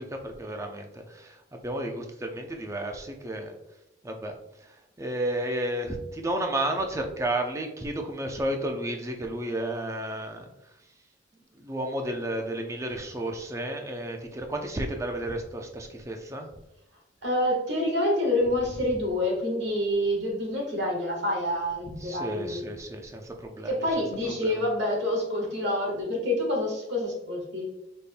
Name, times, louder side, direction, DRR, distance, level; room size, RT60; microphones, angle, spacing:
voice 1, 0.0-3.6 4.0-10.5 11.5-16.5 22.0-23.7 24.4-24.6, right 1 dB, 15° right, 3 dB, 0.5 m, -32 dB
voice 2, 17.2-22.6 23.6-27.7, left 1 dB, 60° right, -1 dB, 1.5 m, -27 dB
5.1 x 4.2 x 2.2 m, 0.91 s
head